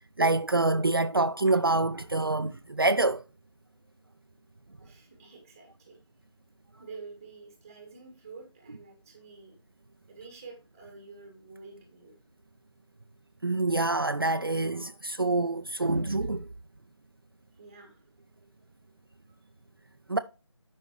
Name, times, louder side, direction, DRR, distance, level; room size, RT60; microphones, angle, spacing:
voice 1, 0.2-3.2 13.4-16.5 20.1-20.2, right 2 dB, 50° right, 0.4 m, -26 dB
voice 2, 4.8-6.0 6.8-9.6 10.1-12.1 17.6-18.5 19.3-19.4, right 4 dB, 5° right, 1.2 m, -49 dB
12.5 x 5.3 x 3.0 m
figure-of-eight pair, 165°, 16 cm